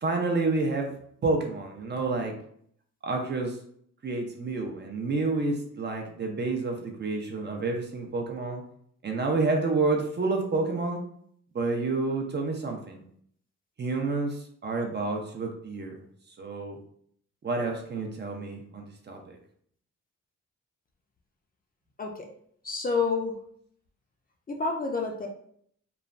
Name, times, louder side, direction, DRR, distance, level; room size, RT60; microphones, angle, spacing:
voice 1, 0.0-0.9 1.2-2.3 3.0-3.6 4.0-8.6 9.0-11.0 11.5-13.0 13.8-16.0 16.4-16.8 17.4-19.4, right 3 dB, 35° right, 2 dB, 0.5 m, -29 dB
voice 2, 22.6-23.3 24.5-25.3, left 4 dB, 30° left, 1 dB, 0.4 m, -28 dB
3.1 x 2.1 x 2.4 m, 0.64 s
wide cardioid pair, 120°, 30 cm